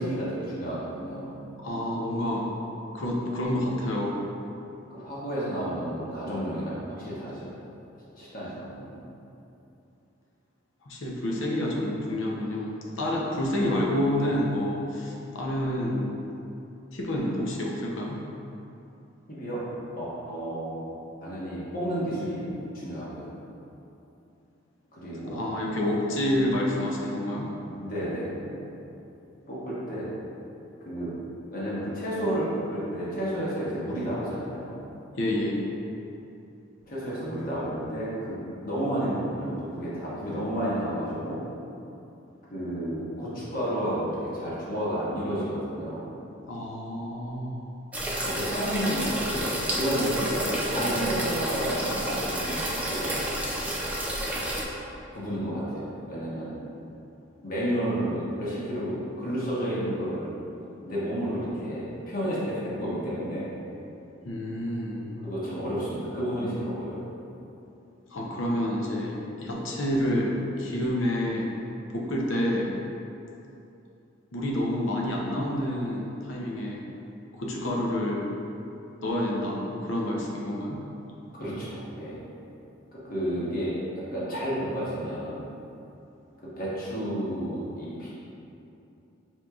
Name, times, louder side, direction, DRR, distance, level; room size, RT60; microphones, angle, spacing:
voice 1, 0.0-1.4 3.5-3.7 4.9-7.5 8.1-9.0 19.3-19.6 20.0-20.9 21.2-23.3 24.9-25.5 27.8-28.7 29.5-30.1 30.8-31.1 31.5-34.8 36.9-41.4 42.5-46.1 48.2-49.5 49.7-53.1 55.1-56.5 57.4-60.3 60.9-63.4 65.2-67.0 69.9-70.1 81.4-82.2 83.0-83.7 84.1-85.4 86.6-88.1, equal, 45° left, -8 dB, 1.1 m, -31 dB
voice 2, 1.6-2.5 2.9-4.2 10.8-16.2 16.9-18.2 25.3-27.5 35.2-35.6 46.5-47.7 64.2-65.1 68.1-71.5 71.9-72.7 74.3-76.8 77.3-78.3 79.0-80.8, left 1 dB, 70° left, -2 dB, 0.6 m, -28 dB
sound 1, 47.9-54.6, right 1 dB, 5° right, 0.3 m, -30 dB
4.4 x 3.8 x 2.3 m, 2.8 s
head